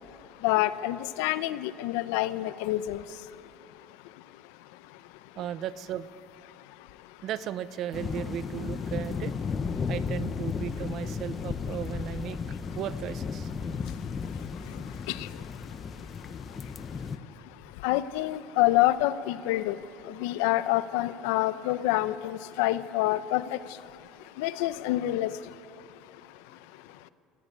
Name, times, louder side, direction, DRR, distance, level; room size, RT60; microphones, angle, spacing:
voice 1, 0.4-3.0 15.1-15.3 17.8-19.8 20.1-23.6 24.4-25.3, left 15 dB, 90° left, 14 dB, 0.8 m, -27 dB
voice 2, 5.4-6.1 7.2-9.3 9.9-12.4 12.7-13.5, right 11 dB, 50° right, 15 dB, 0.8 m, -36 dB
sound 1, 7.9-17.2, left 5 dB, 25° left, 0.9 m, -34 dB
24.5 x 16.0 x 8.4 m, 2.6 s
cardioid pair, 140°, 0 cm